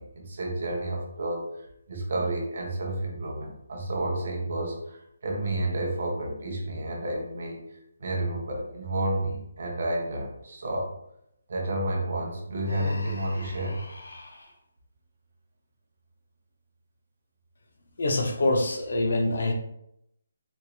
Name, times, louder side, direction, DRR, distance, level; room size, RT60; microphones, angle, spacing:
voice 1, 0.0-10.9 11.5-13.8, right 1 dB, 40° right, -1 dB, 0.7 m, -31 dB
Human voice, 12.6-14.5, left 1 dB, 85° left, 0.8 m, -41 dB
voice 2, 18.0-19.5, left 2 dB, 50° left, 3 dB, 0.6 m, -25 dB
4.3 x 2.9 x 2.3 m, 0.77 s
hypercardioid pair, 180°, 0 cm